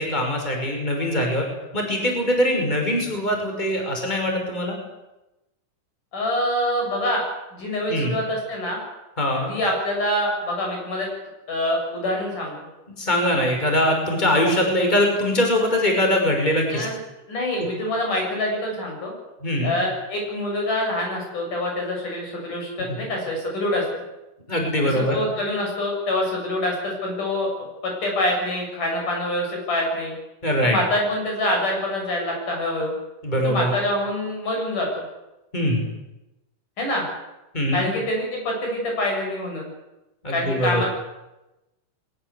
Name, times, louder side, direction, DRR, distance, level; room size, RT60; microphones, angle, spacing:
voice 1, 0.0-1.4 1.7-4.8 7.9-8.1 9.2-9.6 13.0-16.9 19.4-19.8 22.9-23.0 24.5-25.2 30.4-30.8 33.2-33.7 35.5-35.8 37.5-37.9 40.2-40.8, left 1 dB, 15° left, 2 dB, 5.6 m, -22 dB
voice 2, 6.1-7.2 7.5-8.8 9.5-11.1 11.5-12.5 16.7-17.0 17.3-19.1 19.6-23.8 24.8-30.1 30.6-32.9 33.3-35.0 36.8-37.1 37.7-39.7 40.3-40.9, left 1 dB, 75° left, 0 dB, 9.3 m, -25 dB
22.5 x 20.5 x 8.3 m, 0.98 s
omnidirectional pair, 3.7 m